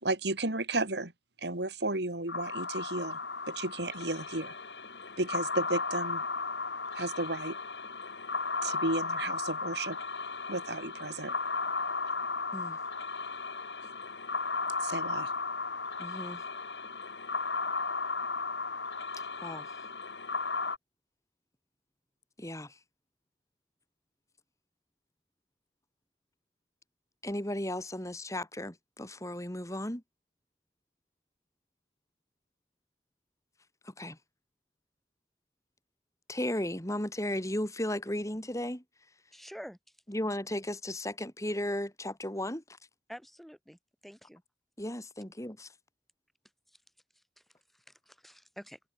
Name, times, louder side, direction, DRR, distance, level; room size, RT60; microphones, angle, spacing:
voice 1, 0.0-1.1 1.4-3.2 3.5-4.6 5.2-6.2 6.9-7.6 8.6-10.0 10.5-11.3 14.8-15.3, right 2 dB, 70° right, 3.6 m, -33 dB
sound 1, 2.3-20.8, left 4 dB, 80° left, 5.0 m, -35 dB
voice 2, 16.0-16.4 19.4-19.7 22.4-22.8 27.2-30.0 33.8-34.2 36.3-38.8 40.1-42.6 44.8-45.7, left 1 dB, 20° left, 4.1 m, -35 dB
voice 3, 39.3-39.8 43.1-44.4 47.7-48.8, equal, ahead, 3.4 m, -48 dB
head